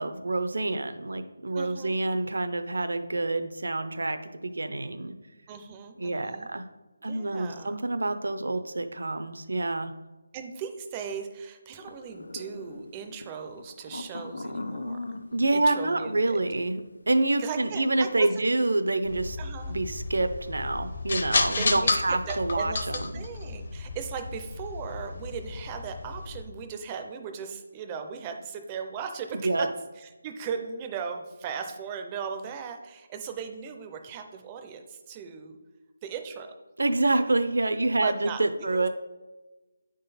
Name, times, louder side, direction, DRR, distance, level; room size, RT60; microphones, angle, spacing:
voice 1, 0.0-5.1 6.0-6.6 7.0-9.9 15.3-19.4 19.7-23.2 29.4-29.7 36.8-38.9, right 2 dB, 75° right, 8 dB, 0.6 m, -27 dB
voice 2, 1.5-2.0 5.5-6.5 7.0-7.8 10.3-15.0 15.5-16.4 17.4-18.3 19.4-19.8 21.5-29.7 30.0-35.6 36.0-36.5 38.0-38.8, right 6 dB, 10° right, 6 dB, 0.4 m, -38 dB
sound 1, 11.8-17.7 18.0-18.1 19.3-19.5 19.8-20.1, left 2 dB, 85° left, 0.6 m, -40 dB
sound 2, 19.0-26.4, left 3 dB, 40° left, 0.6 m, -32 dB
9.1 x 3.8 x 4.1 m, 1.1 s
figure-of-eight pair, 175°, 0 cm